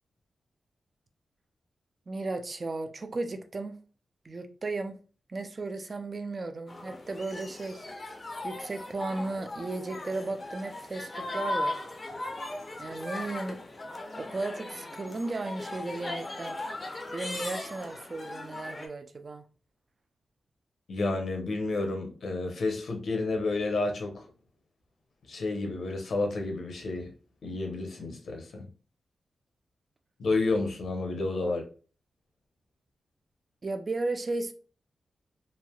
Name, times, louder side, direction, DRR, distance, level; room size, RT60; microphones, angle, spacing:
voice 1, 2.1-3.8 4.2-5.0 5.3-7.9 8.4-11.8 12.8-13.6 14.2-16.6 17.1-19.4 31.4-31.5 33.6-34.5, right 2 dB, 35° right, 0.3 m, -35 dB
sound 1, 6.7-18.9, left 2 dB, 30° left, 0.5 m, -38 dB
voice 2, 20.9-24.2 25.3-27.1 27.4-28.7 30.2-31.6, left 3 dB, 65° left, 0.7 m, -30 dB
3.2 x 2.6 x 2.2 m
wide cardioid pair, 150°, 0 cm